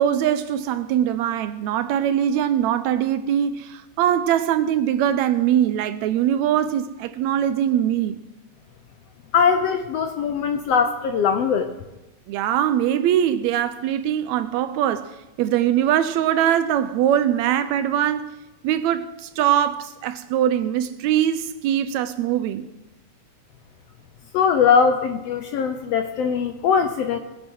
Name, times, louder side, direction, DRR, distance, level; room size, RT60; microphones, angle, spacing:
voice 1, 0.0-8.2 12.3-18.3 18.6-22.7, right 10 dB, 80° right, 1.7 m, -22 dB
voice 2, 9.3-11.7 24.3-27.2, left 6 dB, 75° left, 1.5 m, -20 dB
20.0 x 7.8 x 6.2 m
omnidirectional pair, 3.5 m